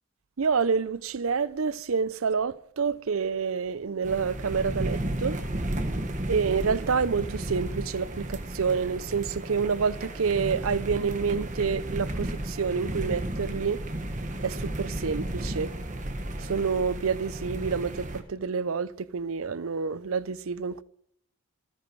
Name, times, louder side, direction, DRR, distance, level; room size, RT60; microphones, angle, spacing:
voice 1, 0.4-5.4 6.3-13.8 14.4-15.7 16.4-20.8, right 5 dB, 80° right, 0.6 m, -28 dB
sound 1, 4.0-18.2, right 1 dB, 35° right, 1.5 m, -33 dB
26.0 x 10.5 x 4.7 m
head